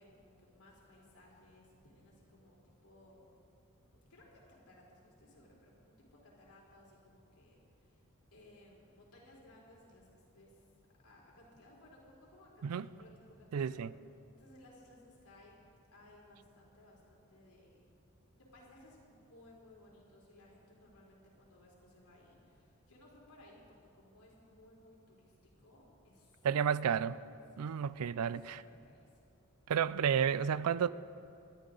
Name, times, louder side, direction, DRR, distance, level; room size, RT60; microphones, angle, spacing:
voice 1, 0.0-3.3 3.8-8.0 8.3-10.6 11.0-13.1 13.4-13.9 14.4-15.5 15.9-17.8 18.3-26.5 26.9-27.0 27.6-27.7 28.0-29.3, left 1 dB, 90° left, 3.9 m, -61 dB
voice 2, 13.5-13.9 26.4-27.2 27.6-28.6 29.7-30.9, right 7 dB, 90° right, 0.4 m, -31 dB
20.5 x 13.0 x 3.9 m
head